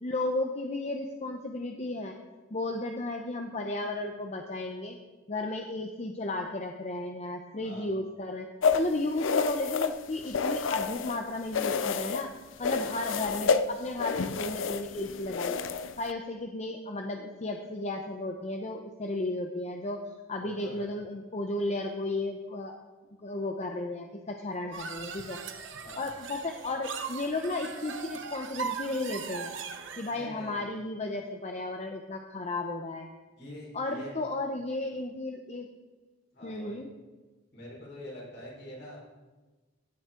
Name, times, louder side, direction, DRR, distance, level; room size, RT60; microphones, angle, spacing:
voice 1, 0.0-2.1 2.5-5.0 5.3-8.5 8.7-12.3 12.6-15.6 16.0-20.0 20.3-22.8 23.2-25.4 25.9-29.6 30.0-33.1 33.7-35.7 36.4-36.9, left 2 dB, 35° left, 3 dB, 0.8 m, -34 dB
voice 2, 7.6-7.9 12.6-12.9 20.4-20.9 25.8-26.1 30.1-30.6 33.4-34.2 36.3-36.8 37.5-39.0, left 1 dB, 60° left, -4 dB, 4.6 m, -45 dB
sound 1, 8.6-11.2 11.5-12.3 12.6-16.1, left 5 dB, 80° left, 0.5 m, -29 dB
sound 2, 24.7-30.2, right 6 dB, 70° right, 1.0 m, -39 dB
15.5 x 9.2 x 3.8 m, 1.3 s
head